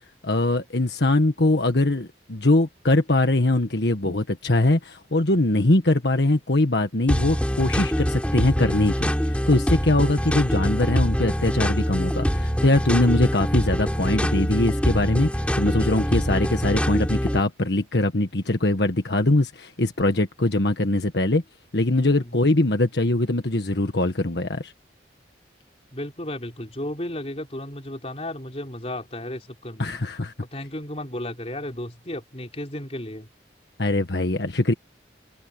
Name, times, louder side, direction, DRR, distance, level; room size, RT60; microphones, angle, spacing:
voice 1, 0.2-9.1 9.5-15.3 15.5-21.4 21.7-24.7 29.8-30.3 33.8-34.7, left 2 dB, 70° left, 1.5 m, -22 dB
sound 1, 7.1-17.4, equal, 5° left, 3.3 m, -24 dB
voice 2, 21.9-22.5 25.9-30.0 30.4-33.3, left 1 dB, 35° left, 3.9 m, -34 dB
head